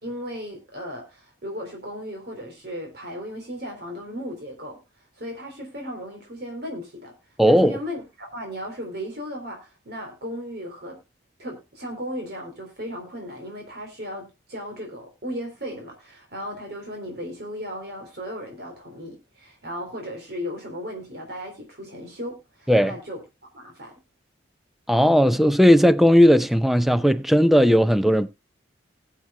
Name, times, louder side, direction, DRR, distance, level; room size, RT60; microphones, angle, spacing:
voice 1, 0.0-7.1 7.5-11.0 11.4-23.9, equal, 55° right, 3.6 m, -36 dB
voice 2, 7.4-7.8 22.7-22.9 24.9-28.3, equal, ahead, 0.5 m, -17 dB
21.0 x 7.4 x 2.3 m
head